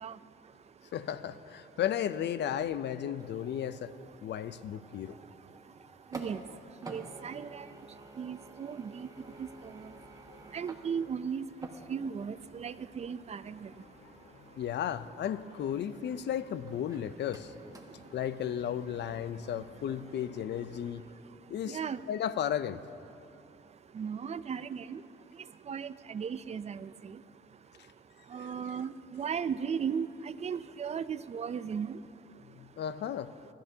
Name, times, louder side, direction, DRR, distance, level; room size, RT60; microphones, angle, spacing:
voice 1, 0.9-3.9 4.2-5.2 10.3-10.4 14.6-17.5 18.1-21.1 21.5-21.8 22.1-22.8 28.4-28.5 32.6-33.3, left 9 dB, 60° left, 14 dB, 0.5 m, -34 dB
sound 1, 3.2-6.5 6.8-12.3 12.6-12.7 16.7-20.1, right 2 dB, 20° right, 1.3 m, -51 dB
voice 2, 6.8-7.7 8.2-9.1 9.4-9.9 10.5-11.4 11.9-13.7 21.7-22.0 23.9-25.0 25.7-27.2 28.3-32.0, right 7 dB, 35° right, 15 dB, 0.4 m, -36 dB
sound 2, 9.1-21.1, left 5 dB, 85° left, 1.2 m, -59 dB
22.0 x 13.0 x 2.8 m, 2.9 s
cardioid pair, 90°, 20 cm